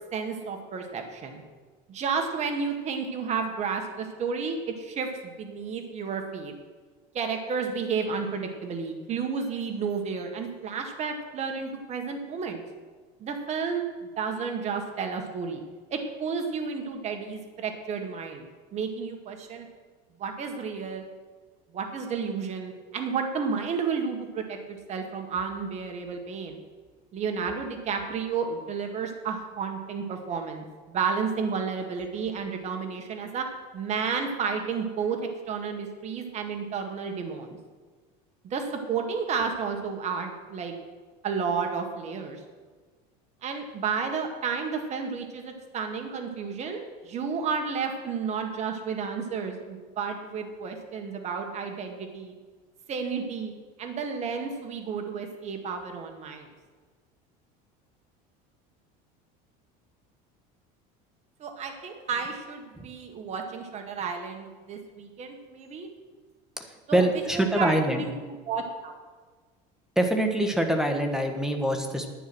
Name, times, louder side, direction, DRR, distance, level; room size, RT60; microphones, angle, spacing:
voice 1, 0.1-1.4 1.9-6.5 7.1-12.6 13.2-15.6 15.9-19.7 20.2-21.0 21.7-26.6 27.1-33.5 33.7-37.6 38.4-40.7 41.2-42.4 43.4-52.3 52.9-53.5 53.8-56.5 61.4-65.9 66.9-67.1 67.3-69.0, right 5 dB, 35° right, 4 dB, 1.7 m, -32 dB
voice 2, 66.6-68.1 70.0-72.1, right 1 dB, ahead, 4 dB, 1.5 m, -25 dB
11.0 x 9.5 x 6.2 m, 1.4 s
supercardioid pair, 130°, 20 cm